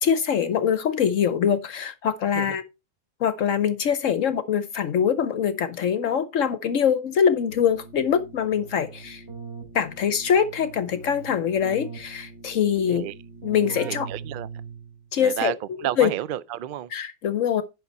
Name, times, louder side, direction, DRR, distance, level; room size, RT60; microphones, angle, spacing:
voice 1, 0.0-2.6 3.2-9.2 9.7-13.1 13.4-14.1 15.1-16.1 16.9-17.6, left 8 dB, 65° left, 1.0 m, -23 dB
Keyboard (musical), 7.5-15.1, right 5 dB, 50° right, 3.1 m, -41 dB
voice 2, 13.8-14.5 15.2-16.9, right 12 dB, 80° right, 0.4 m, -31 dB
11.0 x 5.8 x 4.2 m
omnidirectional pair, 1.5 m